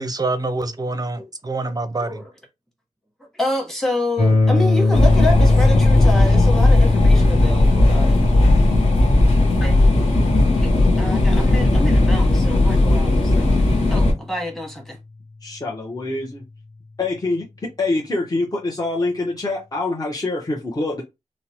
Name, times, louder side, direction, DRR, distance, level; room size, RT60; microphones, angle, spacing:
voice 1, 0.0-2.2, right 2 dB, 30° right, 0.5 m, -26 dB
voice 2, 3.3-8.2 9.6-9.7 11.0-15.0, left 1 dB, 5° left, 1.0 m, -28 dB
sound 1, 4.2-14.1, left 3 dB, 80° left, 0.9 m, -22 dB
sound 2, 4.9-14.1, left 2 dB, 55° left, 1.1 m, -16 dB
voice 3, 15.4-16.4 17.0-17.5 17.8-21.0, left 2 dB, 30° left, 0.7 m, -25 dB
2.9 x 2.0 x 2.7 m
wide cardioid pair, 70°, 13 cm